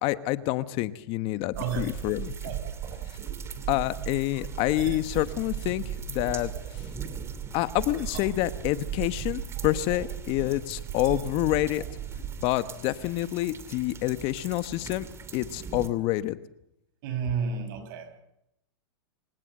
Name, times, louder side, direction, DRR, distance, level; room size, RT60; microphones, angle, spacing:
voice 1, 0.0-2.3 3.7-6.9 7.5-11.8 12.4-15.1 15.3-16.4, left 16 dB, 45° left, 1.1 m, -28 dB
sound 1, 1.5-12.4, right 10 dB, 40° right, 6.0 m, -37 dB
sound 2, 1.6-15.9, right 5 dB, 20° right, 2.4 m, -44 dB
voice 2, 1.6-1.9 2.4-2.8 17.0-18.2, right 6 dB, 60° right, 5.6 m, -32 dB
28.0 x 17.0 x 7.8 m
hypercardioid pair, 115°, 13 cm